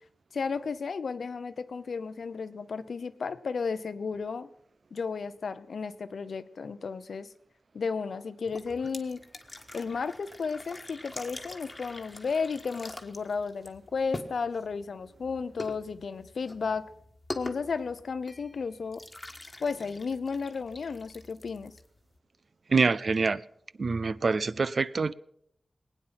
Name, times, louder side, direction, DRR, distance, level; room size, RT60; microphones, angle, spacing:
voice 1, 0.3-4.5 4.9-7.3 7.7-9.2 9.7-16.9 17.3-19.0 19.6-21.7, left 5 dB, 80° left, 13 dB, 0.7 m, -33 dB
sound 1, 8.4-22.2, left 2 dB, 25° left, 1.5 m, -45 dB
voice 2, 22.7-23.4 23.8-25.1, right 4 dB, 60° right, 17 dB, 0.5 m, -25 dB
20.0 x 9.3 x 5.8 m, 0.70 s
wide cardioid pair, 80°, 0 cm